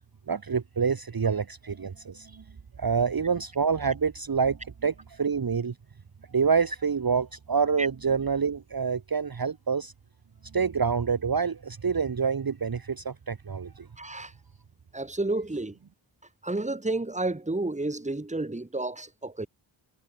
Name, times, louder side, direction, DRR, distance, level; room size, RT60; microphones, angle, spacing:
voice 1, 0.3-2.4 2.8-5.7 6.3-9.9 10.5-13.9, right 6 dB, 45° right, 0.8 m, -27 dB
voice 2, 14.0-14.3 14.9-15.8 16.4-19.5, right 2 dB, 15° right, 1.2 m, -31 dB
wide cardioid pair, 45°, 49 cm